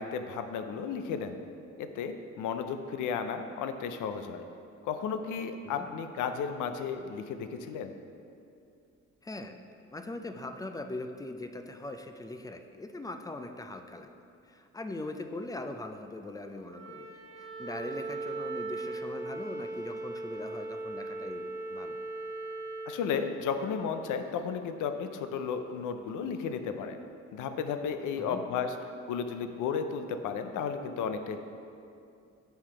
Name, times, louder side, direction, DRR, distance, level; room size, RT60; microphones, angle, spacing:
voice 1, 0.0-1.4 1.8-4.5 4.8-7.9 22.9-27.0 27.3-28.7 29.1-31.4, left 6 dB, 85° left, 8 dB, 0.5 m, -33 dB
voice 2, 9.2-9.6 9.9-14.1 14.4-22.0 28.2-28.4, left 2 dB, 10° left, 7 dB, 0.3 m, -41 dB
Wind instrument woodwind instrument, 16.7-23.0, right 2 dB, 80° right, 0.8 m, -38 dB
5.7 x 4.5 x 5.0 m, 2.5 s
cardioid pair, 90°, 30 cm